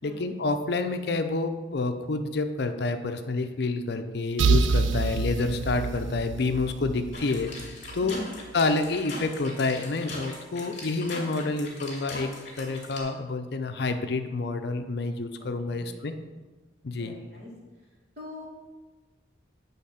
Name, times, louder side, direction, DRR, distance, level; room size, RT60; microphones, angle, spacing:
voice 1, 0.0-8.1 8.5-12.3 12.6-16.1 16.8-17.1, left 3 dB, 60° left, 7 dB, 0.5 m, -28 dB
sound 1, 4.4-8.1, right 4 dB, 75° right, 0.4 m, -27 dB
sound 2, 7.1-13.0, left 2 dB, 40° left, 1.9 m, -40 dB
voice 2, 8.0-8.3 15.4-16.2 16.9-17.5 18.2-18.5, equal, 50° right, -4 dB, 2.2 m, -43 dB
8.5 x 3.5 x 5.6 m, 1.3 s
head